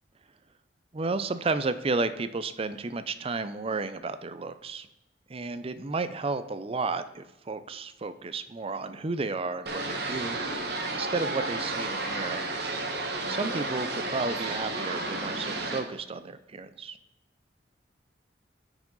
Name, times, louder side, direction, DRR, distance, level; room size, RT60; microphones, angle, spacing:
voice 1, 0.9-4.9 5.3-10.7 10.9-12.4 13.3-17.0, right 3 dB, 35° right, 12 dB, 0.5 m, -32 dB
sound 1, 9.7-15.8, right 2 dB, 65° right, 1.3 m, -32 dB
9.4 x 5.0 x 3.8 m, 0.96 s
head